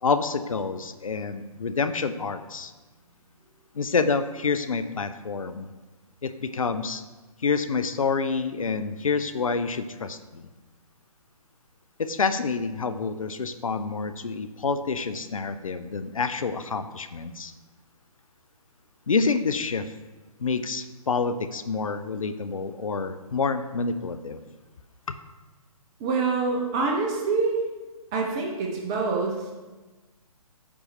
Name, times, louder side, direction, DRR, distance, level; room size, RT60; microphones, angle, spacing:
voice 1, 0.0-2.7 3.7-5.7 6.2-7.0 7.4-10.5 12.0-17.5 19.1-19.9 20.4-24.4 25.1-25.2, left 4 dB, 60° left, 10 dB, 0.6 m, -28 dB
voice 2, 26.0-27.6 28.1-29.7, right 4 dB, 10° right, 0 dB, 0.3 m, -26 dB
8.7 x 6.1 x 3.2 m, 1.2 s
figure-of-eight pair, 135°, 19 cm